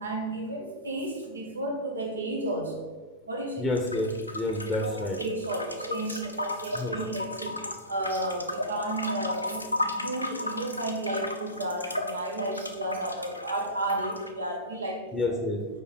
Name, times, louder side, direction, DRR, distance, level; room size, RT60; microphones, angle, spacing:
voice 1, 0.0-2.8 3.3-3.7 4.8-4.9 5.2-7.6 7.9-15.3, right 1 dB, 75° right, 1 dB, 1.1 m, -32 dB
voice 2, 3.6-5.2 6.7-7.0 15.1-15.6, left 2 dB, 10° left, 2 dB, 0.8 m, -29 dB
sound 1, 3.7-14.3, left 2 dB, 85° left, 0.5 m, -35 dB
5.0 x 4.7 x 4.5 m, 1.4 s
figure-of-eight pair, 90°, 0 cm